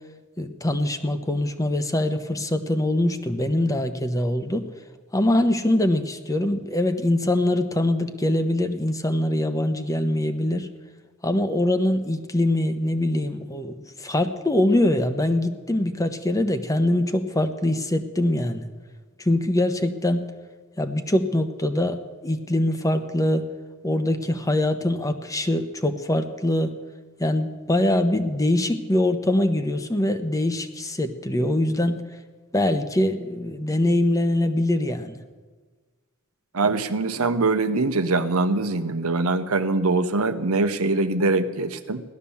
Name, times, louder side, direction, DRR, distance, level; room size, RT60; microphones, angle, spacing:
voice 1, 0.4-4.7 5.1-10.7 11.2-18.7 19.2-20.2 20.8-23.4 23.8-26.7 27.2-32.0 32.5-35.2, left 1 dB, 15° left, 8 dB, 0.9 m, -23 dB
voice 2, 36.5-42.0, right 3 dB, 75° right, 9 dB, 1.0 m, -23 dB
17.0 x 12.0 x 7.1 m, 1.4 s
head